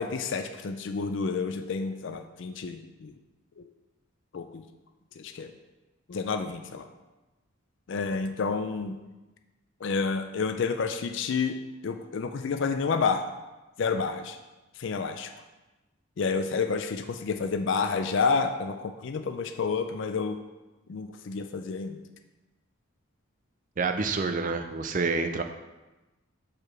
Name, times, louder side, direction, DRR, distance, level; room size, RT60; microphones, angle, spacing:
voice 1, 0.0-3.1 3.6-3.7 4.3-4.6 5.2-5.5 6.1-6.9 7.9-9.0 9.8-13.3 13.8-14.4 14.8-15.3 16.2-20.4 20.9-22.0, left 5 dB, 60° left, 7 dB, 0.4 m, -29 dB
voice 2, 23.8-25.4, right 4 dB, 40° right, 7 dB, 0.4 m, -28 dB
4.9 x 4.7 x 5.9 m, 1.1 s
head